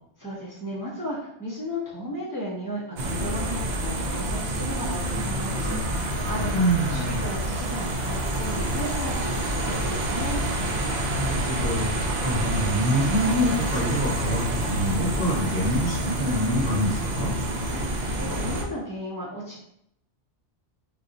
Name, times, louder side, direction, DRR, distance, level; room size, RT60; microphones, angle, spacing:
voice 1, 0.2-10.4 17.3-19.6, equal, 20° right, -8 dB, 0.7 m, -35 dB
sound 1, 3.0-18.6, right 1 dB, 60° right, 0.4 m, -27 dB
voice 2, 6.5-7.2 11.2-11.9 12.2-17.3, equal, 60° left, -4 dB, 1.1 m, -26 dB
2.5 x 2.2 x 4.0 m, 0.75 s
omnidirectional pair, 1.2 m